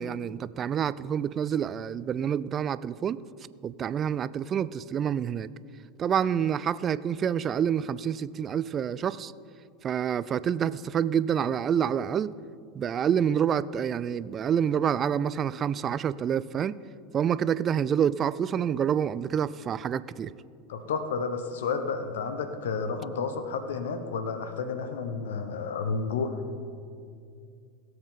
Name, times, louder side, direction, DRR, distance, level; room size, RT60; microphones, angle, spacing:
voice 1, 0.0-3.2 3.6-5.5 6.0-9.3 9.8-12.3 12.7-16.8 17.1-20.3, right 8 dB, 35° right, 18 dB, 0.3 m, -27 dB
voice 2, 20.7-26.6, left 5 dB, 70° left, 8 dB, 0.9 m, -31 dB
17.5 x 7.9 x 3.7 m, 2.4 s
hypercardioid pair, 85°, 0 cm